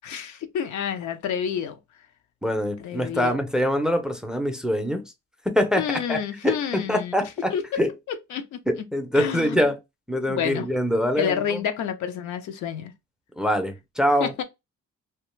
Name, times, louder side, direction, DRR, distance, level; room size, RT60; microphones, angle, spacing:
voice 1, 0.0-1.8 2.8-3.4 5.8-7.1 7.5-8.9 9.1-9.7 10.3-10.7 11.2-12.9 14.2-14.4, left 8 dB, 70° left, 0.6 m, -29 dB
voice 2, 2.4-5.0 5.5-7.9 8.7-9.8 10.1-11.6 13.4-14.3, equal, ahead, 0.5 m, -24 dB
2.4 x 2.2 x 3.0 m
cardioid pair, 90°, 30 cm